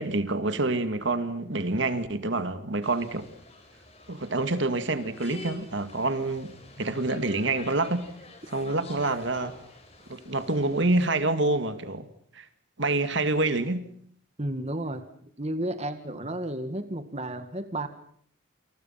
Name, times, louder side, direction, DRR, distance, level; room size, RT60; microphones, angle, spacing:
voice 1, 0.0-3.3 4.1-8.0 8.5-9.6 10.1-12.1 12.3-12.5 12.8-13.9, right 2 dB, 60° right, 2.2 m, -27 dB
sound 1, 2.8-11.1, left 2 dB, 30° left, 6.3 m, -48 dB
voice 2, 14.4-15.1 15.4-17.9, right 1 dB, 30° right, 1.9 m, -32 dB
29.0 x 28.0 x 5.8 m
head